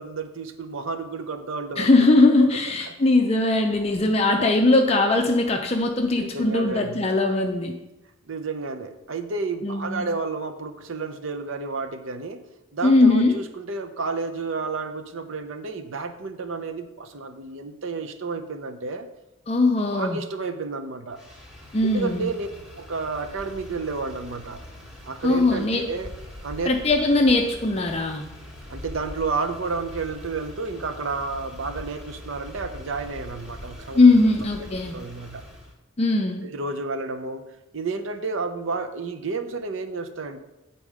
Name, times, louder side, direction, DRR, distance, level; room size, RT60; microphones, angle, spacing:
voice 1, 0.0-1.9 2.9-3.0 6.2-7.0 8.3-12.4 12.7-19.1 19.8-21.2 21.8-22.5 22.8-24.6 25.1-26.1 26.4-26.7 28.7-34.0 34.8-35.4 36.4-37.4 37.7-40.4, right 4 dB, 70° right, 8 dB, 0.7 m, -31 dB
voice 2, 1.8-7.7 9.6-10.1 12.8-13.4 19.5-20.2 21.7-22.3 25.2-25.9 26.7-28.2 33.9-34.9 36.0-36.5, left 2 dB, 30° left, 2 dB, 0.5 m, -20 dB
Motor vehicle (road), 21.1-35.7, left 1 dB, 5° right, 1.3 m, -42 dB
8.9 x 4.2 x 4.9 m, 0.98 s
head